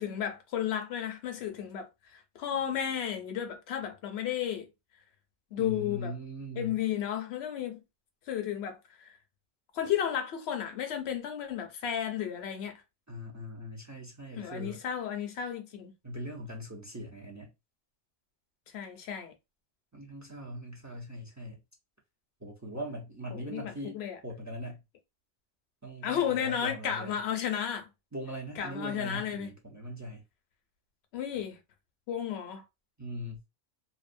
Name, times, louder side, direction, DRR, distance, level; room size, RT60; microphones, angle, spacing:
voice 1, 0.0-1.9 2.4-4.7 5.5-6.1 6.6-7.8 8.3-8.8 9.0-9.1 9.7-12.8 14.4-15.9 18.7-19.3 23.3-24.2 26.0-27.9 28.6-29.5 31.1-31.6 32.1-32.6, left 9 dB, 65° left, 0.8 m, -33 dB
voice 2, 5.6-6.8 13.1-14.8 16.0-17.5 19.9-21.6 22.4-24.8 25.8-27.2 28.1-30.2 33.0-33.4, equal, 20° right, 0.5 m, -40 dB
2.6 x 2.0 x 2.5 m
omnidirectional pair, 1.2 m